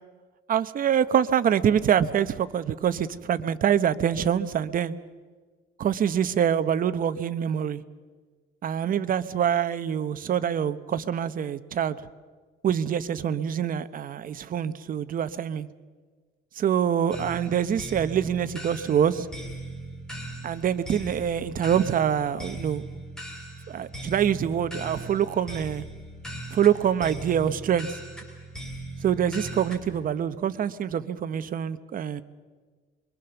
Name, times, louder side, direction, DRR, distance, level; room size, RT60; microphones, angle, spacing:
voice 1, 0.5-5.0 5.8-7.8 8.6-12.0 12.6-15.7 16.5-19.3 20.4-22.8 23.7-25.8 26.5-28.0 29.0-32.2, right 9 dB, 40° right, 13 dB, 0.9 m, -25 dB
sound 1, 17.1-29.8, right 1 dB, 5° left, 3.9 m, -39 dB
24.5 x 23.0 x 7.0 m, 1.4 s
cardioid pair, 145°, 21 cm